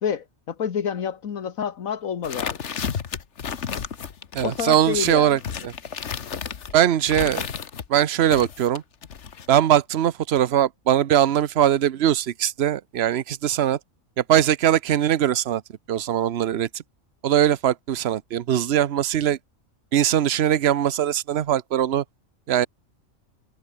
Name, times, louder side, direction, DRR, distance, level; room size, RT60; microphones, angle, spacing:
voice 1, 0.0-2.6 4.4-5.4, left 7 dB, 80° left, 1.7 m, -28 dB
sound 1, 2.2-7.9 8.3-9.5, left 7 dB, 60° left, 1.5 m, -32 dB
voice 2, 4.3-5.7 6.7-7.5 7.9-8.8 9.5-13.8 14.2-15.6 15.9-16.7 17.2-19.4 19.9-22.0 22.5-22.7, right 10 dB, 55° right, 1.0 m, -21 dB
omnidirectional pair, 1.4 m